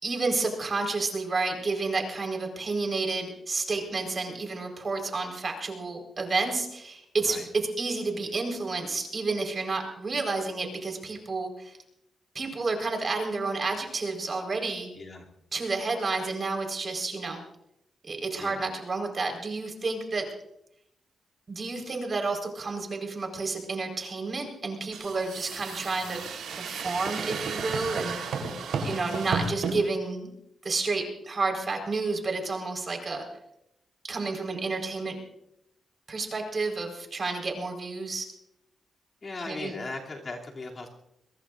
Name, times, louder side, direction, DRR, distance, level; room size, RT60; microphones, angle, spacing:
voice 1, 0.0-11.8 12.3-14.9 15.5-17.4 18.0-20.3 21.5-26.2 26.5-28.2 28.8-30.3 30.6-33.2 34.1-35.1 36.1-38.3 39.4-39.8, right 3 dB, 40° right, 2 dB, 4.5 m, -30 dB
sound 1, 24.9-29.8, right 5 dB, 90° right, 3.7 m, -33 dB
voice 2, 39.2-40.9, left 3 dB, 40° left, -1 dB, 2.9 m, -38 dB
22.5 x 21.5 x 2.6 m, 0.80 s
cardioid pair, 85°, 0 cm